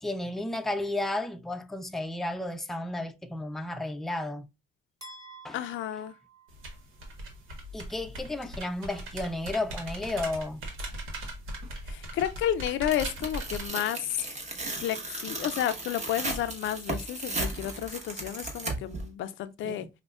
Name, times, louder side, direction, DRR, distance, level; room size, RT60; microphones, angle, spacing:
voice 1, 0.0-4.5 5.4-5.6 7.7-10.6 19.6-19.9, left 2 dB, ahead, 0.4 m, -33 dB
sound 1, 5.0-7.1, right 3 dB, 20° right, 1.4 m, -50 dB
voice 2, 5.5-6.1 11.9-14.3 14.8-19.9, left 11 dB, 75° left, 0.4 m, -31 dB
sound 2, 6.5-13.7, right 1 dB, 90° right, 1.0 m, -39 dB
Tearing, 12.9-19.0, right 2 dB, 35° right, 1.1 m, -35 dB
5.2 x 2.1 x 2.3 m
cardioid pair, 90°, 20 cm